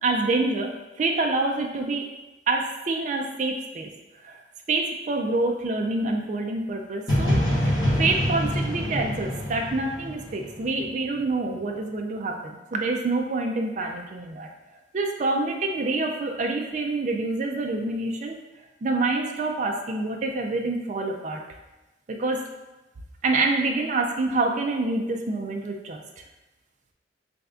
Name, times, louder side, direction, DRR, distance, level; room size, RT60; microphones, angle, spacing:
voice 1, 0.0-2.0 2.5-3.9 4.2-4.4 4.7-14.5 14.9-18.4 18.8-21.4 22.1-22.4 23.2-26.0, right 3 dB, 40° right, 2 dB, 0.4 m, -27 dB
sound 1, 7.1-10.9, equal, 20° left, 1.4 m, -25 dB
3.2 x 2.6 x 3.5 m, 1.0 s
head